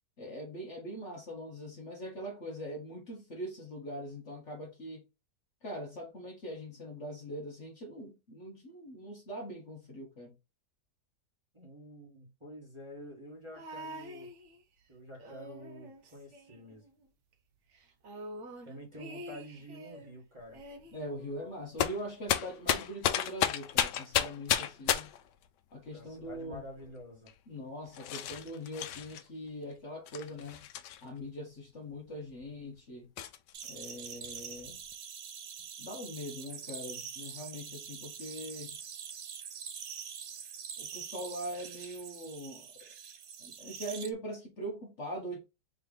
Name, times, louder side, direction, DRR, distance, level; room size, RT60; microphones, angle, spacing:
voice 1, 0.2-5.0 5.6-10.3 20.9-25.1 25.7-26.6 27.5-30.7 31.0-33.1 33.7-34.8 35.8-38.8 40.8-42.7 43.4-45.4, equal, 50° left, 1.2 m, -42 dB
voice 2, 11.5-14.3 14.9-16.8 18.6-20.6 25.9-27.3, equal, 20° right, 1.5 m, -48 dB
sound 1, 13.5-14.8 15.1-17.1 17.3-17.4 17.7-20.1 20.5-21.8 22.7-22.8, equal, 55° right, 1.0 m, -47 dB
sound 2, 20.6-20.8 21.8-25.3 26.1-26.9 27.3-27.4 27.9-29.2 30.1-31.2 31.9-32.0 32.4-32.5 33.2-33.7 34.0-34.9, left 10 dB, 90° left, 1.2 m, -33 dB
sound 3, 33.5-44.1, right 7 dB, 75° right, 0.5 m, -44 dB
3.7 x 3.2 x 3.7 m
omnidirectional pair, 1.8 m